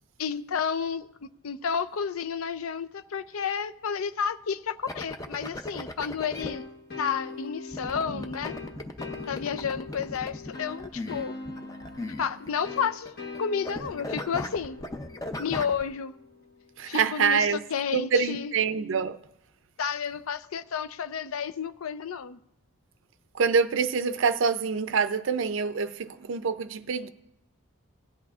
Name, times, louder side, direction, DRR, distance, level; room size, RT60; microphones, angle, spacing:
voice 1, 0.2-1.1 1.4-6.6 7.0-8.5 9.3-11.3 12.2-14.8 15.4-16.2 16.9-18.5 19.8-22.4, left 7 dB, 80° left, 0.5 m, -31 dB
sound 1, 4.9-6.5 7.7-12.8 13.1-13.4 13.6-15.8, left 1 dB, 15° left, 0.5 m, -37 dB
sound 2, 6.4-16.9, left 3 dB, 50° left, 1.2 m, -42 dB
voice 2, 16.8-17.6 17.9-19.2 23.3-27.1, right 5 dB, 60° right, 0.5 m, -26 dB
17.0 x 10.5 x 2.4 m
head